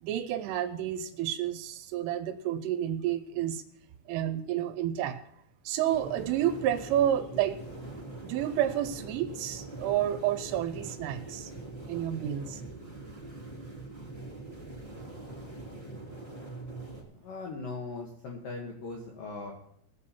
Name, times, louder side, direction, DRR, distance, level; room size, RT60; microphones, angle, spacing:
voice 1, 0.0-3.6 4.1-5.3 5.7-7.6 8.2-11.5 11.9-12.6, right 11 dB, 80° right, 9 dB, 3.1 m, -30 dB
sound 1, 5.9-17.0, right 2 dB, 45° left, 0.5 m, -43 dB
voice 2, 17.2-19.5, left 3 dB, 75° left, 0 dB, 2.0 m, -39 dB
21.0 x 7.0 x 4.2 m, 0.72 s
omnidirectional pair, 5.9 m